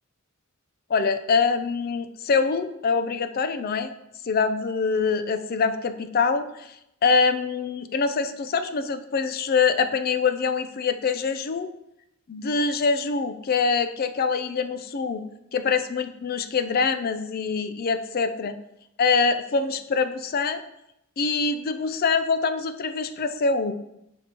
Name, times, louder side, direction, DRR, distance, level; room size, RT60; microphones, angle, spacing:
voice 1, 0.9-3.9 4.2-6.8 7.0-11.7 12.3-15.2 15.5-18.5 19.0-20.6 21.2-23.7, left 5 dB, 45° left, 10 dB, 0.4 m, -24 dB
6.9 x 6.1 x 2.9 m, 0.83 s
head